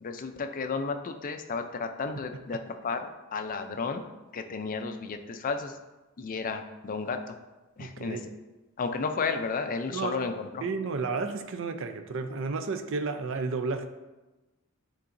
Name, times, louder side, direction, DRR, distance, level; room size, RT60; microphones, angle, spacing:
voice 1, 0.0-4.0 4.3-5.8 6.2-7.4 7.8-8.2 8.8-10.6, left 4 dB, 40° left, 7 dB, 0.4 m, -33 dB
voice 2, 7.8-8.3 9.9-10.2 10.6-13.9, right 4 dB, 60° right, 8 dB, 0.5 m, -32 dB
9.6 x 3.8 x 2.6 m, 1.1 s
head